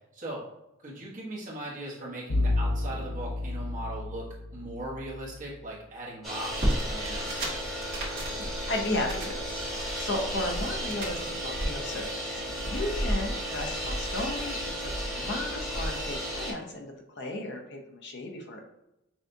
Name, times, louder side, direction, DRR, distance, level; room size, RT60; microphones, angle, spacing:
voice 1, 0.8-4.2 4.5-7.5, right 1 dB, 40° right, -5 dB, 1.2 m, -39 dB
Bowed string instrument, 2.3-5.4, left 2 dB, 90° left, 0.7 m, -30 dB
sound 1, 6.2-16.5, equal, ahead, 1.1 m, -33 dB
sound 2, 6.5-11.7, right 1 dB, 55° right, 1.4 m, -34 dB
voice 2, 7.9-9.4 9.7-18.6, left 2 dB, 55° left, 2 dB, 0.6 m, -35 dB
6.2 x 2.4 x 2.6 m, 0.89 s
head